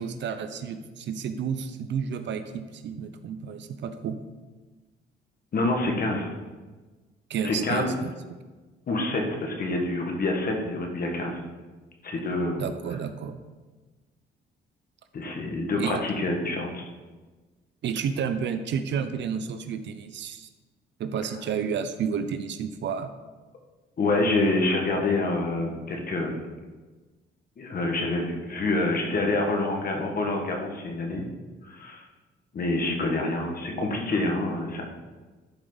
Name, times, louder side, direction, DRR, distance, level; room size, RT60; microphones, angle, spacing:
voice 1, 0.0-4.2 7.3-8.1 12.6-13.4 15.8-15.9 17.8-20.5 21.0-23.1, right 7 dB, 65° right, 9 dB, 0.7 m, -31 dB
voice 2, 5.5-6.3 7.4-7.9 8.9-11.3 12.0-12.6 15.1-16.8 24.0-26.4 27.6-31.2 31.7-32.0 32.5-34.8, left 2 dB, 50° left, 1 dB, 1.7 m, -27 dB
11.5 x 4.7 x 4.0 m, 1.3 s
cardioid pair, 90°, 20 cm